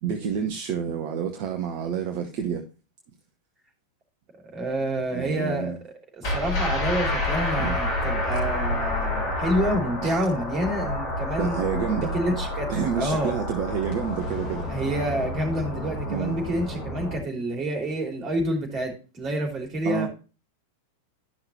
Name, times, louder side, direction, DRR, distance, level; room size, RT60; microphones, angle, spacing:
voice 1, 0.0-2.6 5.1-5.8 7.6-7.7 10.0-10.2 11.4-12.1 12.7-14.7 16.1-16.4 19.8-20.1, right 7 dB, 45° right, 1.0 m, -28 dB
voice 2, 4.5-13.3 14.7-20.1, right 1 dB, 30° right, 2.9 m, -28 dB
sound 1, 6.2-17.2, left 1 dB, 45° left, 3.0 m, -29 dB
12.0 x 5.8 x 2.7 m
figure-of-eight pair, 90°, 0 cm